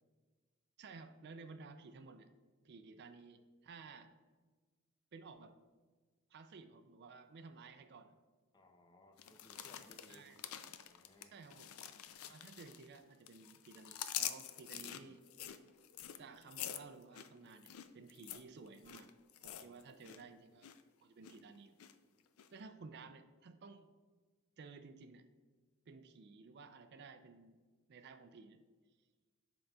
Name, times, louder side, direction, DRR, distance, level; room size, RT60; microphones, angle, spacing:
voice 1, 0.8-2.3 2.6-4.2 5.1-5.5 6.3-8.2 10.1-10.4 11.3-11.8 12.2-15.6 16.2-19.1 19.4-20.7 21.0-21.8 22.5-23.9 24.6-25.2 25.9-27.6 27.9-28.6, right 4 dB, 50° right, 9 dB, 0.4 m, -55 dB
voice 2, 8.5-10.3 10.9-11.4 19.5-19.7, left 1 dB, 20° left, 5 dB, 0.5 m, -64 dB
sound 1, 9.2-13.0 13.3-20.2 20.5-20.8 21.2-21.9 22.4-22.5, left 11 dB, 75° left, 0.4 m, -46 dB
11.5 x 3.8 x 2.3 m, 1.4 s
head